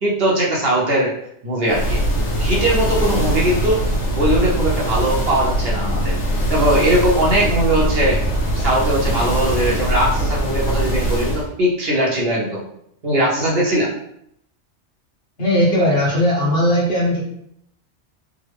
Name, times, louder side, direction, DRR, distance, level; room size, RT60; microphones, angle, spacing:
voice 1, 0.0-1.1 1.4-2.0 2.4-3.8 4.1-6.1 6.5-8.2 8.6-12.6 13.0-13.9, right 1 dB, 60° right, -4 dB, 1.0 m, -20 dB
sound 1, 1.7-11.5, equal, 85° left, 1.3 m, -21 dB
voice 2, 15.4-17.2, equal, 60° left, -6 dB, 1.5 m, -17 dB
3.7 x 2.1 x 3.3 m, 0.73 s
omnidirectional pair, 1.2 m